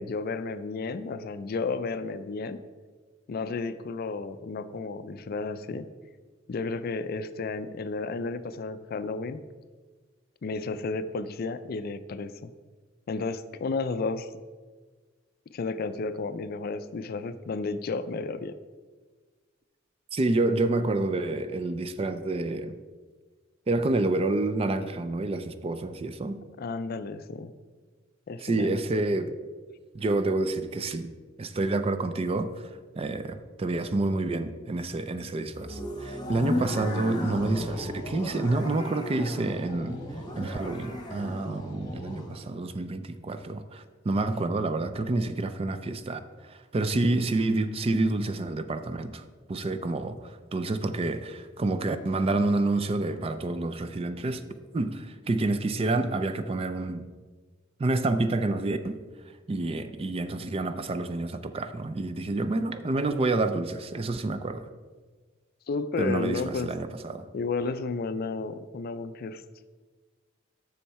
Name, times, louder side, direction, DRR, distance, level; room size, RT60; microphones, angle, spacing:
voice 1, 0.0-2.6 3.3-5.9 6.5-9.4 10.4-12.5 13.1-14.3 15.5-18.6 26.6-27.5 28.3-28.8 65.7-66.7 67.3-69.4, left 4 dB, 50° left, 13 dB, 0.4 m, -32 dB
voice 2, 20.1-22.7 23.7-26.4 28.4-29.4 29.9-31.1 31.4-32.5 33.0-40.0 40.4-49.2 49.5-54.4 54.7-57.0 57.8-59.0 59.5-64.6 66.0-67.2, right 2 dB, 30° right, 10 dB, 0.4 m, -28 dB
sound 1, 35.5-42.4, left 1 dB, 20° left, 1.1 m, -35 dB
7.1 x 6.3 x 4.6 m, 1.4 s
head